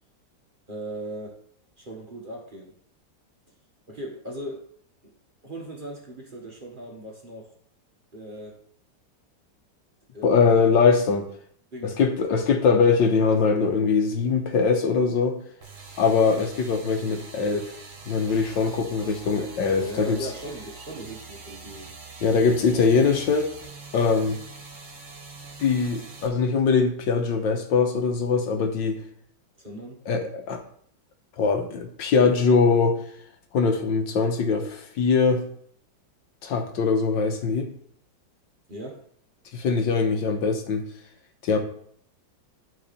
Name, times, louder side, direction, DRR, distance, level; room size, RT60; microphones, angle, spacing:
voice 1, 0.7-1.4 1.8-2.7 3.9-4.6 5.0-5.1 5.4-7.5 8.1-8.6 10.1-10.6 11.7-12.0 19.8-21.9 29.6-30.0 38.7-39.0, right 1 dB, 30° right, 0 dB, 1.4 m, -38 dB
voice 2, 10.2-11.3 11.8-15.4 16.0-17.8 18.1-20.2 22.2-23.5 23.9-24.4 25.6-29.0 30.1-30.6 31.4-33.0 33.5-35.4 36.4-37.7 39.5-40.8 41.4-41.6, left 5 dB, 80° left, 4 dB, 1.7 m, -22 dB
sound 1, 15.6-26.3, right 4 dB, 50° right, 1.7 m, -44 dB
12.0 x 4.1 x 4.1 m, 0.63 s
omnidirectional pair, 2.0 m